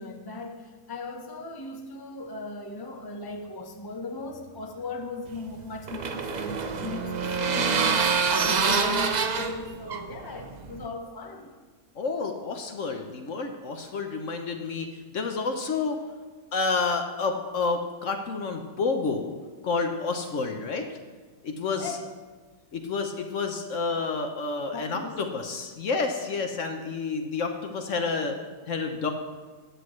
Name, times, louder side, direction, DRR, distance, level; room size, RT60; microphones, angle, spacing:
voice 1, 0.0-11.6 21.8-22.0 24.7-25.2, left 3 dB, 20° left, 2 dB, 0.8 m, -37 dB
sound 1, 5.3-10.9, right 5 dB, 60° right, 0.4 m, -26 dB
voice 2, 12.0-16.0 16.5-19.3 19.6-20.8 21.4-22.0 22.7-28.4 28.7-29.1, left 4 dB, 60° left, 4 dB, 1.2 m, -29 dB
15.5 x 9.9 x 3.2 m, 1.4 s
omnidirectional pair, 1.6 m